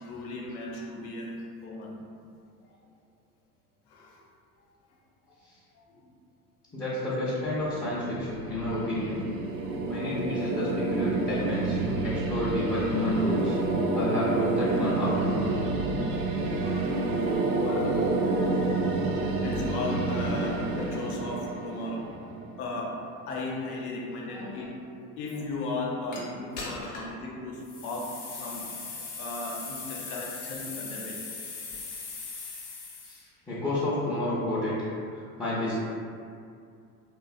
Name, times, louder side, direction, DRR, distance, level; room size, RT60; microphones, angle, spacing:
voice 1, 0.0-1.3 1.6-1.9 2.6-2.7 3.9-4.2 4.6-4.7 5.3-5.4 5.7-6.1 6.7-6.9 9.6-9.8 16.1-16.2 16.6-17.3 17.6-18.6 19.4-22.1 22.6-23.0 23.3-24.7 25.0-31.2, left 2 dB, 80° left, -2 dB, 0.6 m, -37 dB
voice 2, 6.7-9.2 9.9-13.6 13.9-15.4 24.3-24.5 26.6-26.7 33.0-35.7, left 1 dB, 10° left, -12 dB, 0.4 m, -30 dB
sound 1, 7.6-22.6, right 2 dB, 55° right, 0.5 m, -29 dB
sound 2, 26.1-26.2 26.6-27.1 27.6-33.2, left 4 dB, 45° left, 0.8 m, -39 dB
2.6 x 2.2 x 2.3 m, 2.4 s
hypercardioid pair, 80°, 45 cm